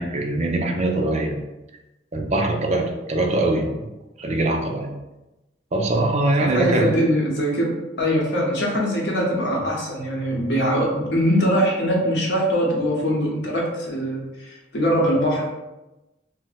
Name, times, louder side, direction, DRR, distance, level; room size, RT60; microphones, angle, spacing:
voice 1, 0.0-1.4 2.1-3.9 4.2-4.9 5.7-6.9, right 2 dB, 40° right, 2 dB, 0.4 m, -22 dB
voice 2, 6.5-15.4, equal, 80° left, -3 dB, 0.9 m, -22 dB
2.7 x 2.0 x 4.0 m, 1.0 s
head